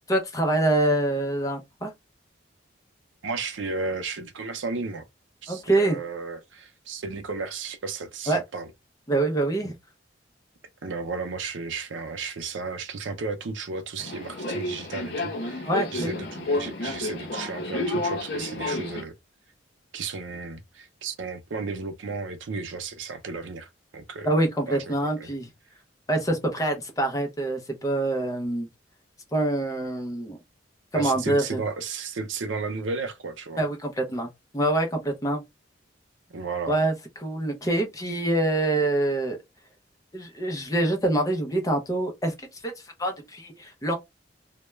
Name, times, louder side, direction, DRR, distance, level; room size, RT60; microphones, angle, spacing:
voice 1, 0.1-1.9 5.5-6.0 8.3-8.4 9.1-9.8 15.6-16.1 24.2-25.5 26.1-28.7 29.3-30.4 30.9-31.6 33.6-35.4 36.7-39.4 40.1-42.7 43.0-44.0, right 1 dB, 20° left, 0.5 m, -25 dB
voice 2, 3.2-5.0 5.4-8.7 10.8-19.1 19.9-24.3 24.7-25.3 30.9-33.6 36.3-36.8, right 4 dB, 80° right, 0.5 m, -34 dB
Subway metro underground, 14.0-19.0, left 2 dB, 60° left, 0.7 m, -30 dB
2.2 x 2.1 x 3.0 m
head